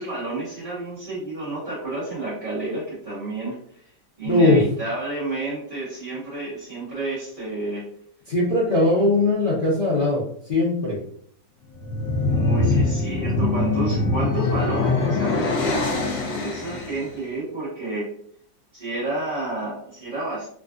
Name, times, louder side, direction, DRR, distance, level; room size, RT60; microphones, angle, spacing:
voice 1, 0.0-3.6 4.2-7.8 8.8-8.9 12.2-18.1 18.7-20.5, right 2 dB, 25° right, -13 dB, 1.3 m, -30 dB
voice 2, 4.2-4.6 8.3-10.2 10.5-11.0, left 2 dB, 50° left, -9 dB, 0.6 m, -19 dB
sound 1, 11.7-17.1, left 3 dB, 75° left, 1.4 m, -23 dB
3.4 x 2.5 x 2.4 m, 0.63 s
omnidirectional pair, 2.1 m